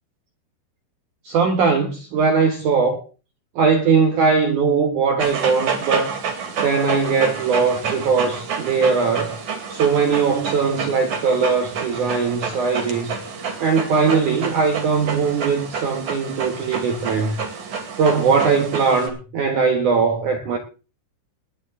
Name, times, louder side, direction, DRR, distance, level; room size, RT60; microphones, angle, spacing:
voice 1, 1.2-3.1 3.6-6.2 6.6-9.4 9.7-13.2 13.6-17.4 18.0-20.6, right 5 dB, 70° right, 1.9 m, -20 dB
Dog, 5.2-19.1, right 6 dB, 45° right, 3.2 m, -29 dB
20.0 x 10.5 x 3.6 m
omnidirectional pair, 5.3 m